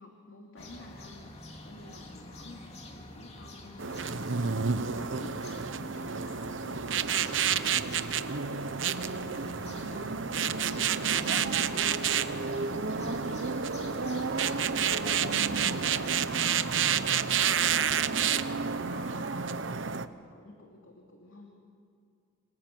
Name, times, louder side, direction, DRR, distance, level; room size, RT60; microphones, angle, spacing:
voice 1, 0.0-18.5 18.8-21.5, left 1 dB, 80° left, 0 dB, 3.0 m, -51 dB
sound 1, 0.6-16.1, left 2 dB, 30° left, 2.7 m, -47 dB
sound 2, 3.8-20.1, right 7 dB, 70° right, 1.0 m, -29 dB
28.0 x 28.0 x 7.7 m, 2.3 s
head